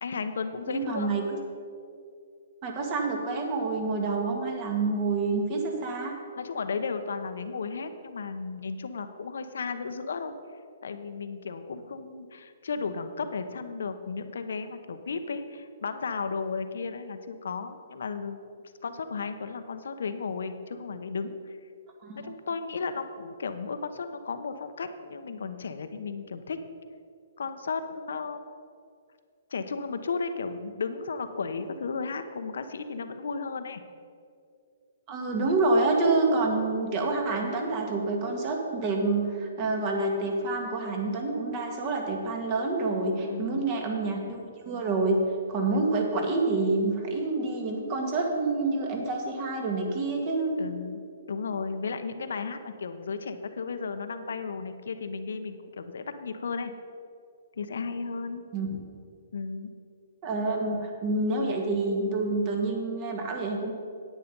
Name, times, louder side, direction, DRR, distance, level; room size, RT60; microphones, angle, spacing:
voice 1, 0.0-1.2 6.4-10.3 10.8-18.4 18.8-21.6 22.2-26.6 27.4-28.4 29.5-33.8 43.2-43.7 50.6-51.0 51.3-56.7 57.6-58.5 59.3-59.7, left 4 dB, 75° left, 9 dB, 0.9 m, -34 dB
voice 2, 0.7-1.2 2.6-6.1 22.0-22.3 35.1-44.4 44.7-45.2 45.5-50.5 58.5-58.7 60.2-63.7, right 3 dB, 30° right, 2 dB, 1.9 m, -27 dB
9.9 x 9.1 x 5.4 m, 2.4 s
hypercardioid pair, 150°, 0 cm